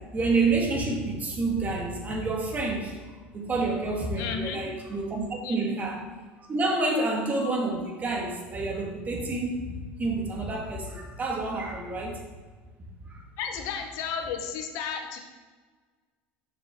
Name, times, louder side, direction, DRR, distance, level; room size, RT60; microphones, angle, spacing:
voice 1, 0.1-3.0 3.3-6.1 6.4-12.2 13.0-13.2, right 3 dB, 30° right, 0 dB, 1.7 m, -28 dB
voice 2, 4.2-4.6 5.4-5.6 13.4-15.2, left 6 dB, 70° left, 4 dB, 1.0 m, -33 dB
7.1 x 5.9 x 3.6 m, 1.4 s
supercardioid pair, 100°, 6 cm